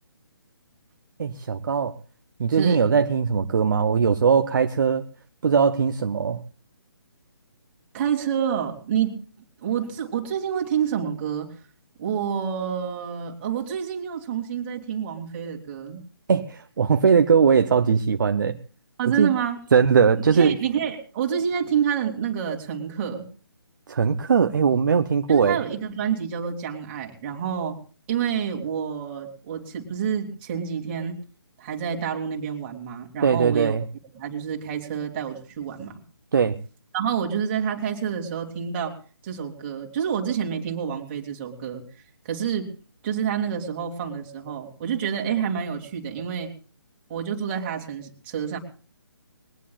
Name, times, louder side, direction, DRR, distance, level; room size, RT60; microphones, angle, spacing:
voice 1, 1.2-2.0 2.4-5.1 5.4-6.4 16.3-18.6 19.1-19.3 19.7-20.6 23.9-25.6 33.2-33.8 36.3-36.6, right 6 dB, 50° right, 8 dB, 0.8 m, -20 dB
voice 2, 7.9-9.1 9.6-11.5 12.0-16.0 19.0-19.6 20.3-23.2 25.3-27.8 28.1-31.2 31.6-33.7 34.1-35.9 36.9-39.0 39.2-41.8 42.2-42.7 43.0-46.5 47.1-48.6, right 8 dB, 25° right, 2 dB, 2.9 m, -28 dB
21.5 x 19.5 x 2.4 m, 0.39 s
figure-of-eight pair, 145°, 13 cm